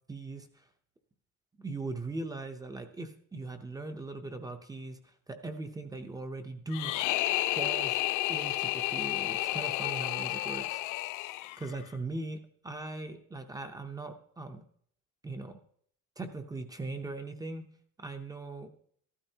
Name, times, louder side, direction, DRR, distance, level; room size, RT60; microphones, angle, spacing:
voice 1, 0.1-0.5 1.6-6.9 7.6-8.0 8.3-10.8 11.6-14.6 15.2-15.6 16.2-17.7 18.0-18.7, right 2 dB, 10° right, 7 dB, 0.6 m, -39 dB
sound 1, 6.7-11.8, left 17 dB, 70° left, 0.5 m, -31 dB
14.0 x 12.5 x 2.8 m, 0.63 s
cardioid pair, 165°, 32 cm